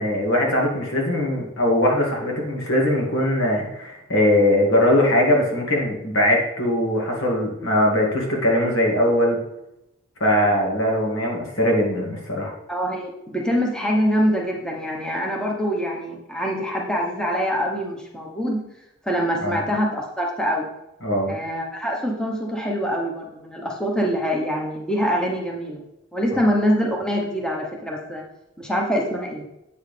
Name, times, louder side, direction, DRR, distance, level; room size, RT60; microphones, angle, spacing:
voice 1, 0.0-9.4 10.2-12.5 19.4-19.6 21.0-21.4, left 1 dB, 75° left, -1 dB, 2.1 m, -21 dB
voice 2, 12.7-18.6 19.0-20.7 21.3-25.8 26.1-28.2 28.6-29.5, equal, 5° left, -1 dB, 1.0 m, -24 dB
8.2 x 6.4 x 3.3 m, 0.87 s
head